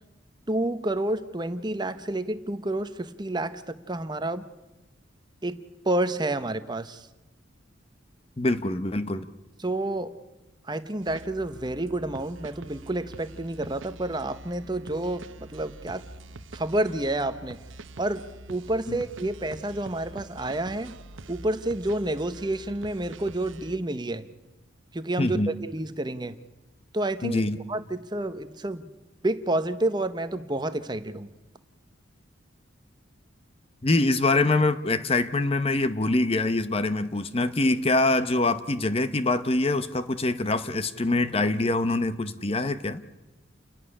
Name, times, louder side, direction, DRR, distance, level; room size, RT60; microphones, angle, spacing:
voice 1, 0.5-4.5 5.4-7.1 9.6-10.2 10.6-16.0 16.5-17.6 18.0-20.9 21.3-24.3 24.9-26.4 26.9-27.4 27.7-28.9 29.2-31.3, right 1 dB, 20° right, 11 dB, 0.9 m, -29 dB
voice 2, 8.4-9.3 18.9-19.0 25.2-25.5 27.2-27.6 33.8-43.0, left 2 dB, 30° left, 12 dB, 0.9 m, -24 dB
sound 1, 11.0-23.8, right 2 dB, 85° right, 0.8 m, -45 dB
29.5 x 11.5 x 10.0 m, 1.1 s
head